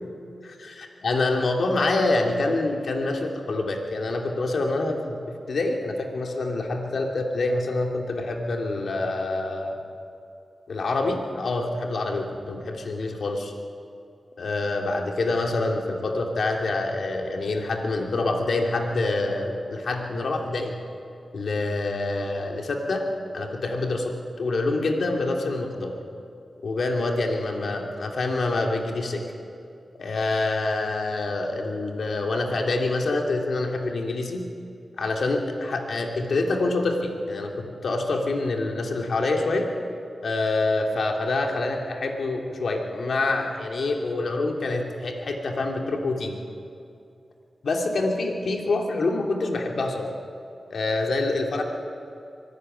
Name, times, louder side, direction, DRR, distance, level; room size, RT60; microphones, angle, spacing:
voice 1, 0.4-5.2 5.5-9.7 10.7-13.5 14.4-20.7 21.3-23.1 23.3-26.0 26.6-29.2 30.0-34.5 35.0-39.7 40.2-46.4 47.6-50.1 50.7-51.6, left 2 dB, 75° left, 2 dB, 2.8 m, -26 dB
24.0 x 14.0 x 9.6 m, 2.6 s
cardioid pair, 65°, 0 cm